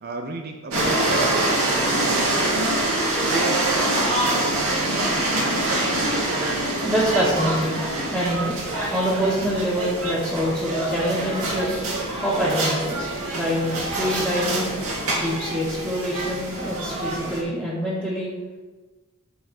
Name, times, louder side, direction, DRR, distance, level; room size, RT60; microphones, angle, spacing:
voice 1, 0.0-2.7 3.3-5.7, right 2 dB, 45° right, 3 dB, 0.7 m, -35 dB
sound 1, 0.7-17.4, right 1 dB, 85° right, 2.6 m, -25 dB
voice 2, 6.8-7.8 8.1-8.6 8.9-11.8 12.2-14.7 15.2-18.3, equal, 5° right, -11 dB, 2.1 m, -25 dB
13.5 x 4.6 x 4.4 m, 1.3 s
head